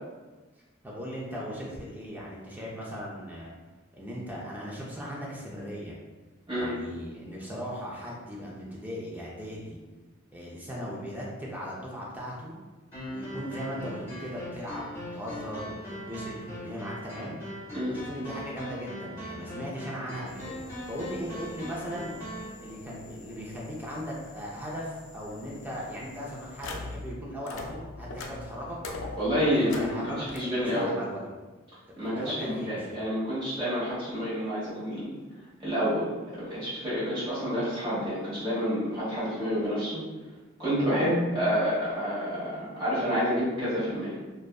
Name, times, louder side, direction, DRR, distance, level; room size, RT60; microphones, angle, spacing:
voice 1, 0.8-3.5 3.9-6.0 6.5-9.8 10.3-12.6 13.1-17.4 17.9-22.1 22.6-28.8 29.4-31.3 31.9-33.0, equal, 10° right, -4 dB, 0.3 m, -38 dB
sound 1, 12.9-22.5, equal, 15° left, 1.2 m, -40 dB
sound 2, 20.3-27.1 27.4-30.4, left 2 dB, 70° left, 0.4 m, -44 dB
voice 2, 29.1-30.9 32.0-35.1 35.6-40.0 40.6-44.1, equal, 25° right, -10 dB, 1.1 m, -29 dB
2.6 x 2.2 x 2.2 m, 1.2 s
head